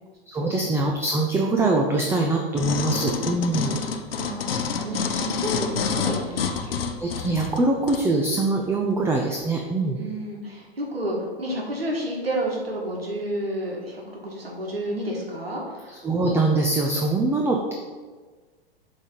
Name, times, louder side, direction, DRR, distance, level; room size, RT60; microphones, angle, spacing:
voice 1, 0.3-3.8 7.0-10.0 16.0-17.7, right 2 dB, 10° right, 1 dB, 0.5 m, -23 dB
sound 1, 2.6-8.1 8.6-8.7, left 6 dB, 75° left, 0.6 m, -28 dB
voice 2, 4.1-6.8 10.0-16.0, right 1 dB, 85° right, -1 dB, 1.7 m, -31 dB
7.1 x 3.5 x 5.5 m, 1.4 s
figure-of-eight pair, 100°, 29 cm